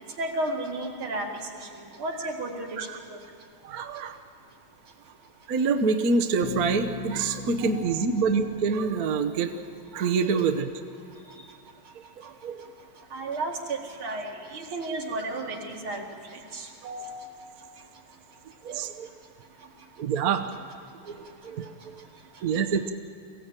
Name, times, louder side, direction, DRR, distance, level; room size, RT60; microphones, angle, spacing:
voice 1, 0.2-1.3 2.0-3.2 7.7-8.0 13.1-16.0 16.5-17.2, right 2 dB, 70° right, 1 dB, 2.9 m, -33 dB
voice 2, 3.6-4.2 5.5-9.5 9.9-10.7 12.2-12.6 18.6-19.1 20.0-20.5 21.0-21.9 22.4-22.9, right 5 dB, 55° right, 6 dB, 1.2 m, -26 dB
Bass guitar, 6.4-10.1, left 6 dB, 65° left, 1.1 m, -40 dB
23.5 x 15.5 x 8.9 m, 2.5 s
omnidirectional pair, 2.4 m